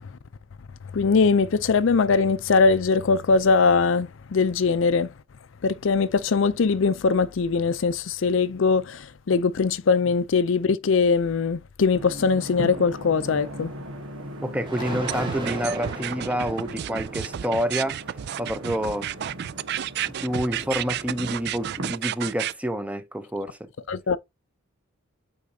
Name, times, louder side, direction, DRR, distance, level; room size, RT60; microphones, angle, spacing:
voice 1, 0.9-5.1 5.6-13.7 23.9-24.2, left 4 dB, 65° left, 0.5 m, -21 dB
sound 1, 11.9-21.9, right 1 dB, 85° right, 1.5 m, -39 dB
sound 2, 13.3-13.4 14.6-22.5, right 1 dB, 25° right, 2.0 m, -39 dB
voice 2, 14.4-18.0 18.4-19.1 20.2-23.6, equal, 5° right, 0.7 m, -28 dB
sound 3, 15.1-22.5, right 11 dB, 50° right, 0.3 m, -31 dB
8.3 x 4.9 x 2.7 m
head